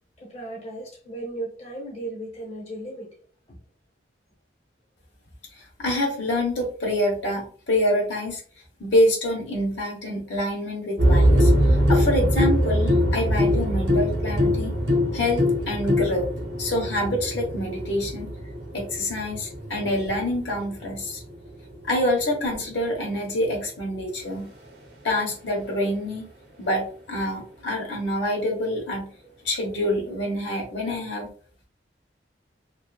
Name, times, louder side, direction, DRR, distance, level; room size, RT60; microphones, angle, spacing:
voice 1, 0.2-3.2 3.5-3.6, right 2 dB, 35° left, 0.7 m, -36 dB
voice 2, 5.5-8.4 8.8-14.7 15.1-16.3 16.6-18.3 18.7-21.2 21.8-24.5 25.0-26.3 26.6-29.1 29.4-31.3, left 1 dB, 80° left, 1.0 m, -26 dB
sound 1, 11.0-22.8 24.2-24.3, equal, 65° right, 0.7 m, -23 dB
2.6 x 2.4 x 2.2 m
head